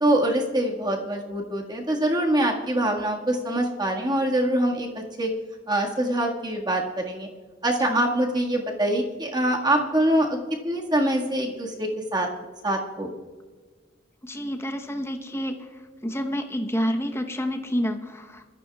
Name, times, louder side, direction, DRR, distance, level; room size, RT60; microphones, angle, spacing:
voice 1, 0.0-5.3 5.7-7.3 7.6-10.4 10.6-12.3 12.6-13.1, right 1 dB, 25° right, -1 dB, 1.8 m, -24 dB
voice 2, 14.2-15.7 16.0-18.4, equal, 15° left, 4 dB, 1.0 m, -28 dB
23.5 x 13.5 x 2.4 m, 1.4 s
head